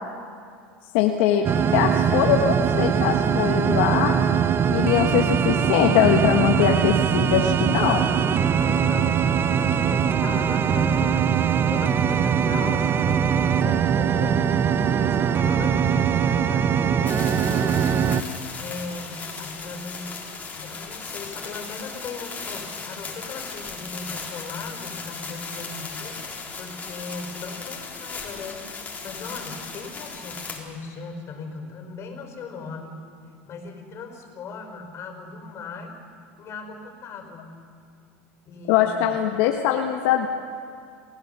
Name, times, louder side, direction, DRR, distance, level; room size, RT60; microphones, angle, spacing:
voice 1, 0.9-1.5 1.7-4.2 4.7-8.1 38.7-40.3, left 10 dB, 70° left, 2 dB, 1.3 m, -22 dB
sound 1, 1.4-18.2, right 7 dB, 35° right, 0.8 m, -21 dB
voice 2, 8.5-11.3 11.6-20.2 20.5-33.0 33.5-35.9 36.4-37.5 38.4-39.2, left 4 dB, 40° left, 5 dB, 4.7 m, -38 dB
sound 2, 17.1-30.6, left 4 dB, 25° left, 3.9 m, -37 dB
28.5 x 16.0 x 6.9 m, 2.3 s
hypercardioid pair, 100°, 7 cm